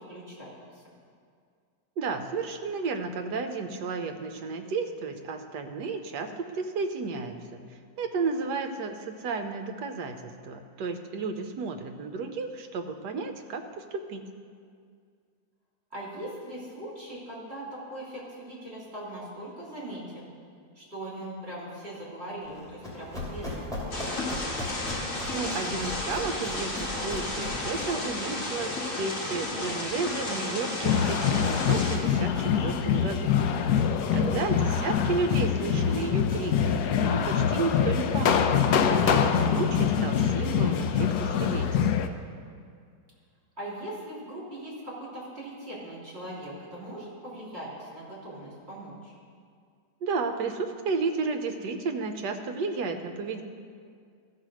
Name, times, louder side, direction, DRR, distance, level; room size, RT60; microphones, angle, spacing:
voice 1, 0.1-0.8 15.9-20.3 20.8-24.4 34.3-34.7 43.6-49.1, right 1 dB, 35° right, -7 dB, 3.5 m, -40 dB
voice 2, 2.0-7.6 8.0-14.2 25.3-33.3 34.1-38.5 38.9-42.0 50.0-53.4, right 4 dB, 70° right, 6 dB, 1.3 m, -32 dB
Run, 22.5-28.0, left 1 dB, ahead, 2.6 m, -38 dB
sound 1, 23.9-32.0, left 2 dB, 50° left, 2.0 m, -33 dB
sound 2, 30.8-42.1, left 7 dB, 70° left, 0.9 m, -24 dB
14.5 x 4.9 x 6.3 m, 2.2 s
omnidirectional pair, 1.9 m